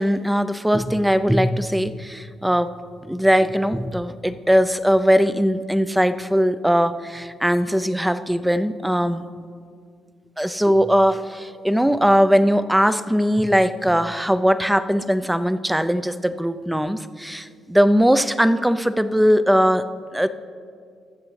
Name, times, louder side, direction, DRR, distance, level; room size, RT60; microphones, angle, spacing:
voice 1, 0.0-2.7 3.0-9.2 10.4-20.3, equal, 5° right, 12 dB, 0.5 m, -20 dB
22.0 x 7.4 x 3.2 m, 2.2 s
cardioid pair, 90°, 0 cm